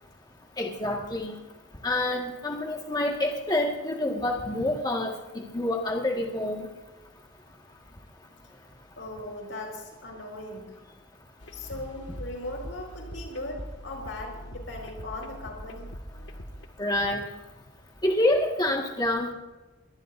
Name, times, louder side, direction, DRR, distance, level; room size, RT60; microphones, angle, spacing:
voice 1, 0.6-1.3 1.8-6.7 16.8-17.2 18.0-19.3, left 1 dB, 20° left, 0 dB, 1.7 m, -27 dB
voice 2, 9.0-10.8 11.5-15.9, left 2 dB, 90° left, 2 dB, 4.9 m, -38 dB
sound 1, 11.4-16.7, equal, 70° left, 1.8 m, -42 dB
23.5 x 19.0 x 2.6 m, 1.1 s
head